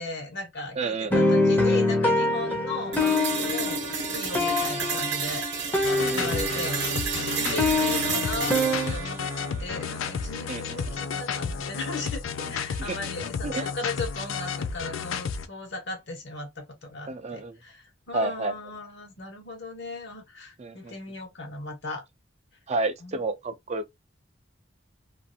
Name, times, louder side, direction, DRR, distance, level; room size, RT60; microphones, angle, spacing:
voice 1, 0.0-3.8 4.1-5.4 6.1-6.8 7.2-9.2 9.6-22.0 23.0-23.3, left 3 dB, 65° left, 1.1 m, -37 dB
voice 2, 0.8-1.3 2.5-2.6 6.0-6.6 7.4-7.6 10.5-10.9 12.8-13.0 13.4-13.7 17.1-17.6 18.1-18.5 20.6-20.9 22.7-23.9, right 3 dB, 35° right, 0.4 m, -31 dB
sound 1, 1.1-6.9 7.1-8.9, left 2 dB, 10° left, 0.6 m, -25 dB
sound 2, 2.9-10.9, right 5 dB, 60° right, 0.8 m, -31 dB
sound 3, 5.8-15.5, left 5 dB, 85° left, 0.4 m, -32 dB
2.5 x 2.4 x 2.7 m
head